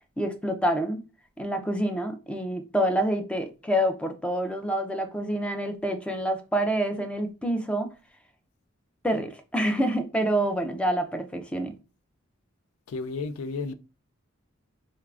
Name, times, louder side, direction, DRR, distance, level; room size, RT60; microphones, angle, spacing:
voice 1, 0.2-1.0 1.4-7.9 9.0-11.7, right 1 dB, 5° left, 0.4 m, -27 dB
voice 2, 12.9-13.7, left 4 dB, 80° left, 0.4 m, -32 dB
3.6 x 3.1 x 2.3 m
head